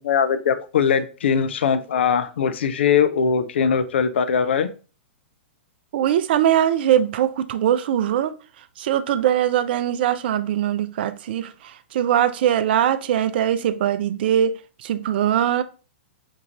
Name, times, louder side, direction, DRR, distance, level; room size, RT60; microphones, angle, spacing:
voice 1, 0.0-4.7, left 7 dB, 70° left, 0.4 m, -21 dB
voice 2, 5.9-8.3 8.8-14.5 14.8-15.6, right 10 dB, 60° right, 0.4 m, -21 dB
4.6 x 2.4 x 2.9 m
hypercardioid pair, 115°, 6 cm